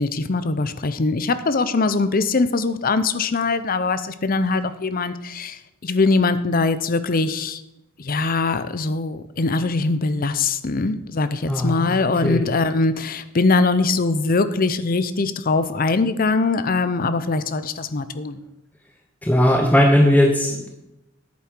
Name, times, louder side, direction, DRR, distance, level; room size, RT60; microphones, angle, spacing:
voice 1, 0.0-7.6 8.0-18.4, left 3 dB, 45° left, 13 dB, 0.6 m, -22 dB
voice 2, 11.5-11.9 12.2-12.4 19.2-20.7, left 1 dB, 10° left, 2 dB, 0.8 m, -17 dB
10.5 x 8.6 x 4.6 m, 0.89 s
head